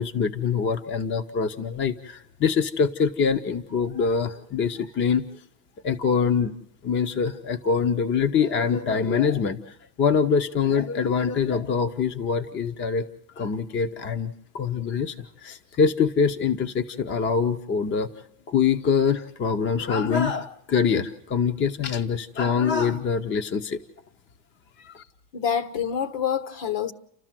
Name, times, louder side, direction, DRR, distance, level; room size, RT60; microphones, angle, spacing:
voice 1, 0.0-5.3 5.8-6.5 6.8-13.0 13.4-18.1 18.5-23.8 24.8-25.0, left 6 dB, 25° left, 0.7 m, -24 dB
voice 2, 25.3-26.9, left 8 dB, 60° left, 1.4 m, -26 dB
30.0 x 13.5 x 7.5 m
cardioid pair, 165°, 46 cm